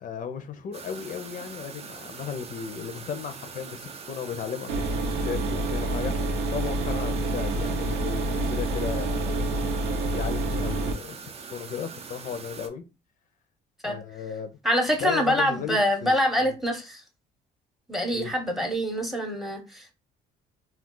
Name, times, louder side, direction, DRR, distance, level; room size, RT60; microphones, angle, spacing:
voice 1, 0.0-4.8 5.1-6.1 6.5-9.5 10.1-12.8 13.8-14.5 15.0-16.1 16.4-16.5 18.1-18.3, left 7 dB, 50° left, 0.5 m, -35 dB
sound 1, 0.7-12.7, right 5 dB, 35° right, 0.5 m, -42 dB
sound 2, 4.7-10.9, right 2 dB, 80° right, 0.7 m, -27 dB
voice 2, 14.6-17.0 17.9-19.9, equal, ahead, 0.8 m, -25 dB
2.4 x 2.3 x 3.7 m
cardioid pair, 110°, 17 cm